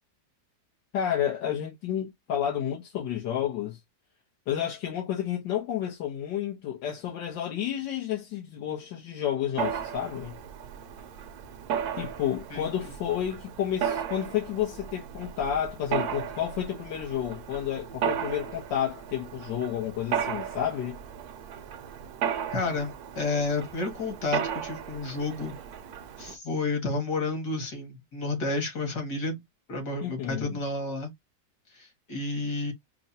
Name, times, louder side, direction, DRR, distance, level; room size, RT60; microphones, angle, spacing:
voice 1, 0.9-3.8 4.5-10.4 12.0-21.0 30.0-30.6, left 10 dB, 85° left, 1.7 m, -31 dB
Mechanisms, 9.6-26.4, right 8 dB, 70° right, 1.0 m, -35 dB
voice 2, 22.5-25.5 26.2-29.4 29.7-31.1 31.7-32.7, left 3 dB, 65° left, 2.4 m, -31 dB
5.3 x 2.2 x 2.7 m
omnidirectional pair, 1.9 m